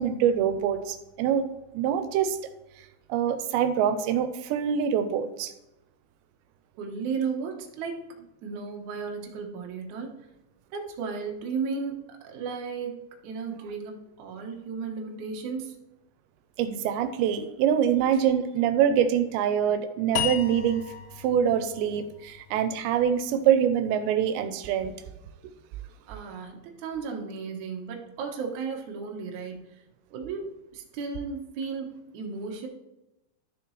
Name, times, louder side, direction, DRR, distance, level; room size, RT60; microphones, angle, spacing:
voice 1, 0.0-1.4 1.7-2.4 3.1-5.5 16.6-20.8 21.2-24.9, right 9 dB, 85° right, 2.9 m, -25 dB
voice 2, 6.8-8.0 8.4-10.1 10.7-13.0 13.2-15.8 18.1-18.2 26.1-29.6 30.1-32.7, right 5 dB, 65° right, 2.0 m, -34 dB
sound 1, 20.2-23.3, left 11 dB, 85° left, 2.7 m, -35 dB
12.5 x 6.8 x 3.2 m
omnidirectional pair, 5.1 m